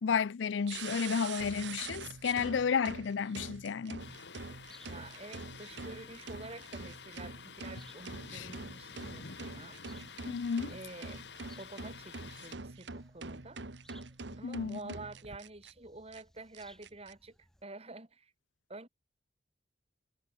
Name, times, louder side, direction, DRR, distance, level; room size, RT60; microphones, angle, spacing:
voice 1, 0.0-4.0 8.3-8.5 10.3-10.7 14.4-14.8, left 6 dB, 80° left, 0.4 m, -32 dB
sound 1, 0.7-15.7 16.1-16.2 16.5-17.1, right 4 dB, 70° right, 1.5 m, -45 dB
Thunder, 4.0-12.6, left 5 dB, 65° left, 2.0 m, -50 dB
sound 2, 4.4-17.6, equal, 5° left, 3.3 m, -64 dB
voice 2, 4.8-9.8 10.7-11.3 11.6-13.6 14.4-17.4 17.6-18.3 18.7-18.9, right 2 dB, 35° right, 2.8 m, -48 dB
head